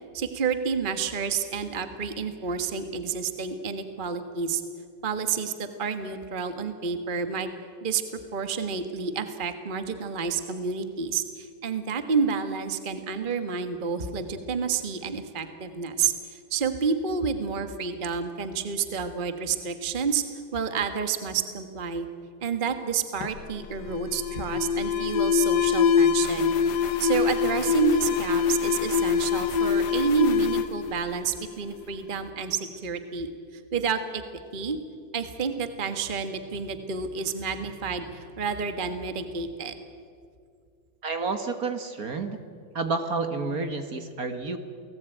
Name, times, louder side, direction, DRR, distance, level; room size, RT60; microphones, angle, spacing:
voice 1, 0.1-4.6 5.0-7.5 7.8-8.0 8.3-20.2 20.5-22.1 22.4-26.5 27.0-34.2 34.5-34.8 35.1-39.8, right 6 dB, 30° right, 8 dB, 1.5 m, -29 dB
Alarm, 23.2-31.8, left 7 dB, 60° left, 1.4 m, -25 dB
voice 2, 41.0-42.4 42.8-44.6, right 3 dB, 50° right, 7 dB, 1.9 m, -30 dB
29.0 x 19.0 x 9.1 m, 2.2 s
omnidirectional pair, 2.1 m